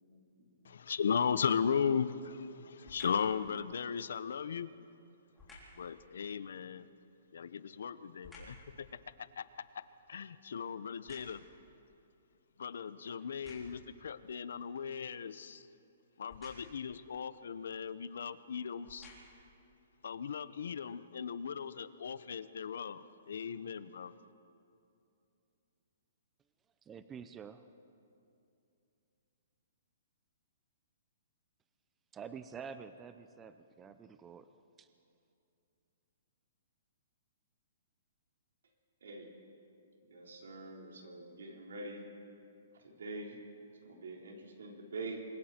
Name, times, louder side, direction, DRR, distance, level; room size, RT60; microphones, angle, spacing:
voice 1, 0.0-0.5 39.0-39.3 40.0-42.1 42.8-43.4 43.8-45.2, right 2 dB, 90° right, 0 dB, 4.1 m, -45 dB
voice 2, 0.6-4.7 5.8-6.9 7.3-8.9 9.4-9.8 10.1-11.4 12.6-15.7 16.2-19.1 20.0-24.1, left 7 dB, 75° left, 15 dB, 0.8 m, -37 dB
sound 1, 2.8-3.3 5.3-5.8 7.3-8.7 9.2-11.7 12.3-12.4 13.2-13.9 16.2-16.8 17.9-18.0 18.7-19.5 20.1-20.2, left 2 dB, 5° left, 3.8 m, -56 dB
voice 3, 26.9-27.7 32.2-34.9, right 6 dB, 10° right, 11 dB, 0.5 m, -48 dB
27.5 x 22.0 x 4.4 m, 2.7 s
hypercardioid pair, 170°, 0 cm